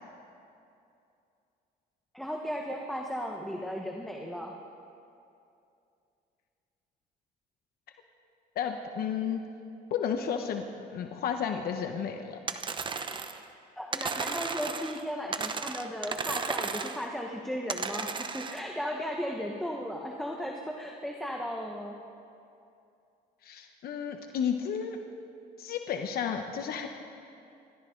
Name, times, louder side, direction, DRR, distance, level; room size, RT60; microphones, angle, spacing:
voice 1, 2.1-4.5 13.8-22.0, equal, ahead, 1 dB, 1.3 m, -36 dB
voice 2, 8.5-9.4 9.9-12.4 23.4-25.0 25.6-26.9, left 7 dB, 65° left, 5 dB, 1.1 m, -32 dB
sound 1, 12.5-13.4 13.9-15.0 15.3-17.0 17.7-18.6, right 5 dB, 30° right, 0.9 m, -34 dB
27.5 x 13.5 x 3.9 m, 2.6 s
cardioid pair, 110°, 17 cm